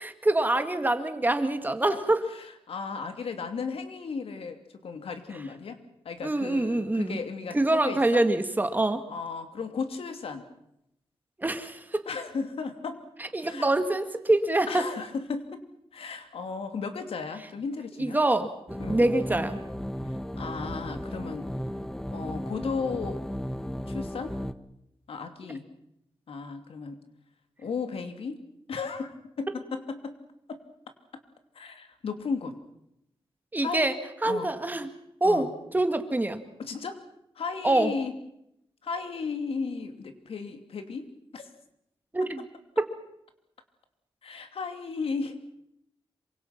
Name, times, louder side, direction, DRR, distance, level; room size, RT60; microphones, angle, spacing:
voice 1, 0.0-2.2 6.2-7.2 7.5-9.0 11.4-12.0 13.2-14.9 18.0-18.5 18.9-19.6 33.5-34.0 34.2-34.9 35.2-36.4 37.6-37.9 42.1-42.4 42.8-42.9, right 2 dB, 20° right, 8 dB, 2.0 m, -25 dB
voice 2, 2.7-5.8 6.0-8.2 9.1-10.4 12.1-13.0 13.4-13.7 14.7-15.6 15.9-18.2 18.8-19.1 20.4-21.5 22.1-23.2 23.9-24.5 25.1-25.7 26.3-27.0 27.6-28.4 28.7-30.1 30.5-30.6 31.5-32.5 33.6-34.0 34.2-34.5 35.2-35.5 36.6-37.0 37.4-38.1 38.8-41.5 44.2-45.4, left 5 dB, 80° left, 7 dB, 2.9 m, -35 dB
sound 1, 18.7-24.5, equal, 5° left, 1.0 m, -35 dB
27.0 x 25.0 x 6.0 m, 0.79 s
wide cardioid pair, 120°, 10 cm